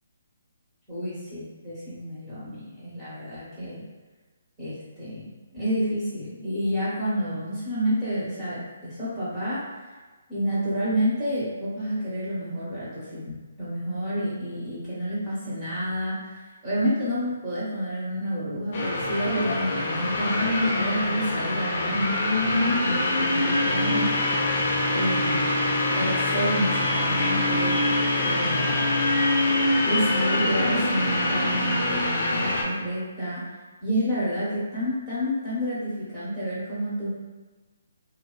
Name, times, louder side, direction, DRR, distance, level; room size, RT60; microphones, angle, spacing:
voice 1, 0.9-3.8 4.6-9.6 10.3-22.2 22.4-24.1 24.9-25.5 25.9-27.8 28.2-28.8 29.8-33.5 33.8-37.1, equal, 15° right, -13 dB, 0.8 m, -29 dB
sound 1, 18.7-32.6, left 2 dB, 45° left, 0.6 m, -24 dB
2.5 x 2.2 x 2.2 m, 1.3 s
figure-of-eight pair, 145°, 0 cm